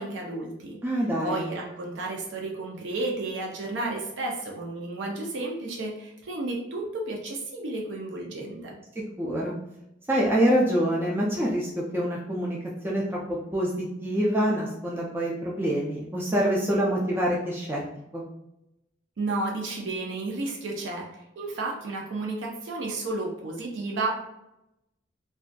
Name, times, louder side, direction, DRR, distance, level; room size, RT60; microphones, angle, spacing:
voice 1, 0.0-0.8 1.2-8.8 19.2-24.1, right 2 dB, 85° right, -1 dB, 0.5 m, -32 dB
voice 2, 0.8-1.4 9.0-9.5 10.1-12.6 12.8-17.8 18.1-18.2, equal, 10° right, -4 dB, 0.3 m, -26 dB
2.5 x 2.3 x 2.2 m, 0.86 s
head